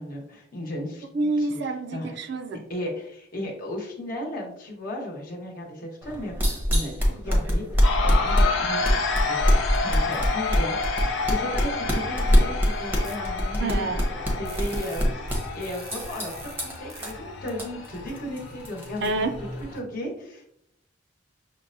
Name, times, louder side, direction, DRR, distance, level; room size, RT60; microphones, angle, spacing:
voice 1, 0.0-1.6 1.9-2.2 2.7-13.9 14.4-19.0 19.7-20.5, left 1 dB, 45° left, -2 dB, 1.0 m, -35 dB
voice 2, 1.1-2.6 13.6-14.0 19.0-19.4, right 2 dB, 60° right, 7 dB, 0.4 m, -27 dB
sound 1, 6.0-19.8, equal, 10° right, 0.7 m, -25 dB
sound 2, 7.8-19.8, left 4 dB, 75° left, 0.6 m, -30 dB
sound 3, 13.0-13.1 14.4-17.1 17.5-17.6, right 6 dB, 85° right, 0.7 m, -45 dB
6.1 x 2.1 x 2.6 m, 0.74 s
head